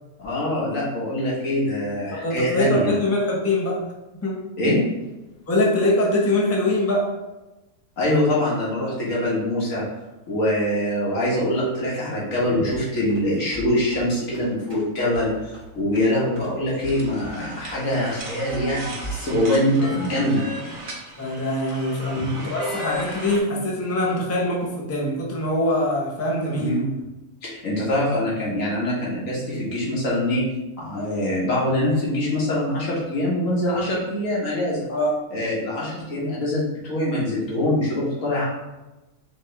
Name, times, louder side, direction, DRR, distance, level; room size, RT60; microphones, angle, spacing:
voice 1, 0.2-2.9 4.6-4.8 8.0-9.8 10.3-20.5 26.5-26.8 27.4-30.4 30.8-34.8 35.3-38.5, left 1 dB, 90° left, -6 dB, 1.9 m, -24 dB
voice 2, 2.1-3.8 4.2-4.4 5.5-7.1 21.2-26.8 34.9-35.1, left 1 dB, 15° left, -2 dB, 0.6 m, -23 dB
sound 1, 12.6-19.3, right 2 dB, 20° right, 1.4 m, -40 dB
sound 2, 16.9-23.4, equal, 45° right, 0.9 m, -36 dB
5.1 x 3.1 x 3.3 m, 1.1 s
omnidirectional pair, 1.3 m